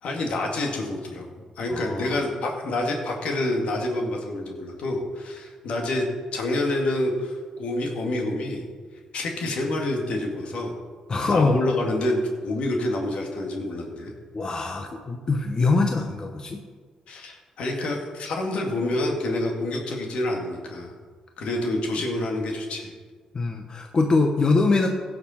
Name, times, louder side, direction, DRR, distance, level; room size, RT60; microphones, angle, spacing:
voice 1, 0.0-1.3 1.6-6.1 6.3-8.6 9.1-10.7 11.3-14.1 17.1-20.9 21.4-22.9, left 1 dB, 70° left, 1 dB, 2.2 m, -27 dB
voice 2, 1.7-2.2 11.1-11.6 14.3-16.6 23.3-24.9, left 3 dB, 35° left, 3 dB, 1.0 m, -23 dB
16.0 x 6.7 x 4.4 m, 1.5 s
cardioid pair, 90°, 2 cm